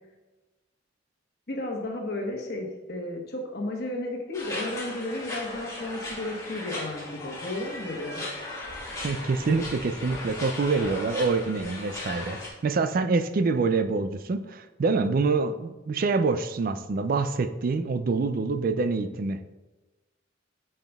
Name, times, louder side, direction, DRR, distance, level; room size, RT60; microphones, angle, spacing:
voice 1, 1.5-8.3, left 1 dB, 55° left, 1 dB, 1.2 m, -33 dB
sound 1, 4.3-12.5, left 2 dB, 15° left, 1.5 m, -37 dB
voice 2, 9.0-19.4, right 4 dB, 45° right, 10 dB, 0.4 m, -26 dB
9.0 x 5.7 x 2.3 m, 1.1 s
head